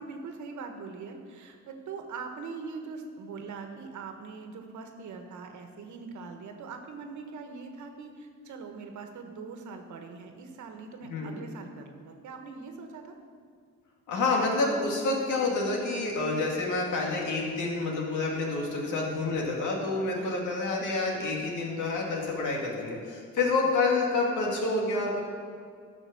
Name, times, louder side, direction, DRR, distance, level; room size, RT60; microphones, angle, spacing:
voice 1, 0.0-13.1 20.1-20.3 23.4-23.5, right 4 dB, 70° right, 5 dB, 1.4 m, -42 dB
voice 2, 14.1-25.2, left 3 dB, 80° left, -1 dB, 2.4 m, -28 dB
12.0 x 6.3 x 6.3 m, 2.1 s
cardioid pair, 90°, 30 cm